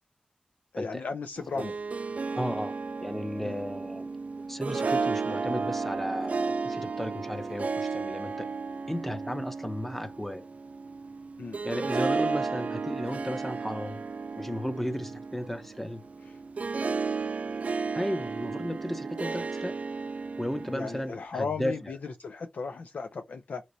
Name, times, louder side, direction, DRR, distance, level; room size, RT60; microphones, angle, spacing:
voice 1, 0.7-1.7 3.4-3.6 11.4-11.6 20.7-23.6, left 4 dB, 85° left, 0.4 m, -36 dB
Harp, 1.4-21.2, right 4 dB, 65° right, 0.3 m, -33 dB
voice 2, 2.4-4.1 4.5-8.5 8.9-10.5 11.6-14.0 14.4-16.0 17.9-19.8 20.4-21.9, equal, 10° left, 0.7 m, -34 dB
4.0 x 3.0 x 2.6 m
cardioid pair, 55°, 3 cm